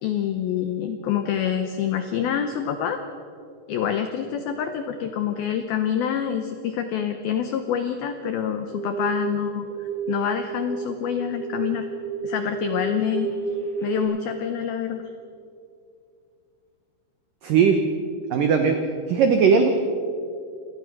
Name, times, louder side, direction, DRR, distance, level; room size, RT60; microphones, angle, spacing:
voice 1, 0.0-3.0 3.7-11.9 12.2-13.3 13.8-15.0, left 9 dB, 85° left, 8 dB, 2.1 m, -26 dB
sound 1, 8.7-9.3 9.6-14.0, right 6 dB, ahead, 7.1 m, -30 dB
voice 2, 17.4-17.8 18.3-18.8 19.1-19.7, right 6 dB, 90° right, 6 dB, 1.9 m, -18 dB
27.5 x 18.0 x 6.1 m, 2.4 s
omnidirectional pair, 5.7 m